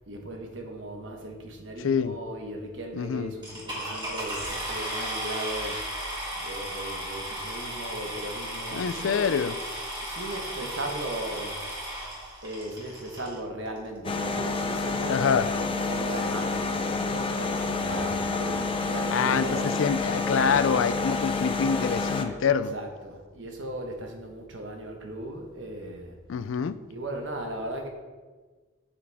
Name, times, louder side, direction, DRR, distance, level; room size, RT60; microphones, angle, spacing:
voice 1, 0.1-5.8 6.3-9.2 9.6-9.8 10.0-11.6 12.4-19.9 22.5-26.2 26.9-27.9, right 1 dB, 65° right, 1.2 m, -37 dB
voice 2, 1.8-2.2 2.9-3.3 8.7-9.5 15.1-15.5 19.1-22.7 26.3-26.8, left 6 dB, 75° left, 0.4 m, -26 dB
sound 1, 3.4-13.4 14.2-14.3 14.8-14.9 15.1-15.4, right 1 dB, 25° right, 2.0 m, -35 dB
sound 2, 14.0-22.2, left 3 dB, 25° left, 0.6 m, -28 dB
8.5 x 7.1 x 3.5 m
head